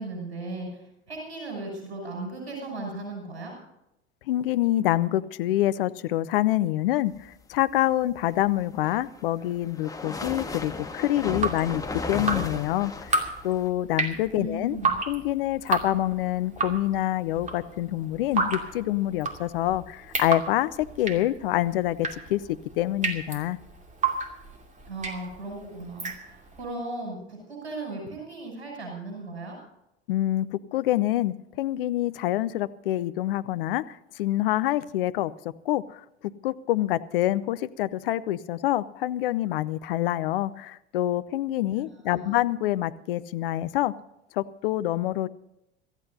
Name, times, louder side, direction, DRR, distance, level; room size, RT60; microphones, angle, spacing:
voice 1, 0.0-3.5 14.3-14.9 24.9-29.6 41.7-42.4, right 2 dB, 70° right, -1 dB, 6.3 m, -37 dB
voice 2, 4.3-11.8 12.1-13.2 13.4-14.8 15.1-23.6 30.1-35.3 35.7-43.9 44.3-45.3, left 14 dB, 55° left, 14 dB, 0.7 m, -26 dB
sound 1, 8.6-13.7, left 3 dB, 10° left, 1.5 m, -35 dB
Drip, 11.2-26.6, right 3 dB, 20° right, 2.5 m, -32 dB
26.5 x 14.0 x 2.8 m, 0.85 s
figure-of-eight pair, 75°, 32 cm